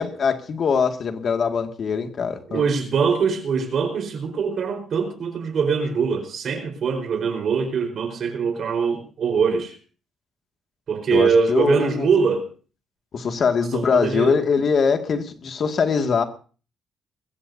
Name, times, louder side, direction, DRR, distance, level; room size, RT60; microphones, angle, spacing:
voice 1, 0.0-2.6 11.1-12.1 13.1-16.2, left 5 dB, 55° left, 2.1 m, -22 dB
voice 2, 2.5-9.8 10.9-12.5 13.7-14.4, right 5 dB, 60° right, 4.4 m, -23 dB
21.0 x 16.5 x 2.8 m
cardioid pair, 90°, 0 cm